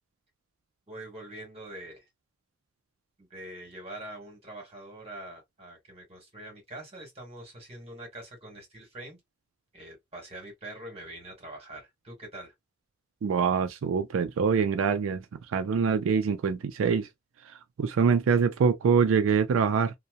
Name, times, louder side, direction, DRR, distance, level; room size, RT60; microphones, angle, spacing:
voice 1, 0.9-2.1 3.2-9.2 9.7-12.5, right 1 dB, 30° right, 1.4 m, -44 dB
voice 2, 13.2-15.2 15.5-17.1 17.5-19.9, right 6 dB, 90° right, 0.4 m, -24 dB
2.7 x 2.1 x 2.2 m
head